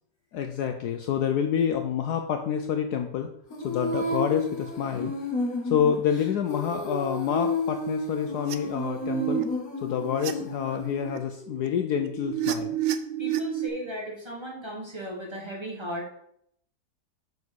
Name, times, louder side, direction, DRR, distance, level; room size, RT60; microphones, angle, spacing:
voice 1, 0.3-3.3 3.6-5.1 5.6-9.5 9.8-12.8, left 8 dB, 70° left, 5 dB, 1.0 m, -27 dB
Female singing, 3.5-11.2, left 1 dB, 50° left, 2.0 m, -32 dB
sound 1, 8.3-8.6 9.0-9.4 9.9-10.3 10.7-13.7, right 11 dB, 90° right, 1.3 m, -31 dB
voice 2, 13.2-16.1, equal, 15° right, -4 dB, 1.6 m, -36 dB
5.4 x 4.7 x 6.3 m, 0.72 s
omnidirectional pair, 2.0 m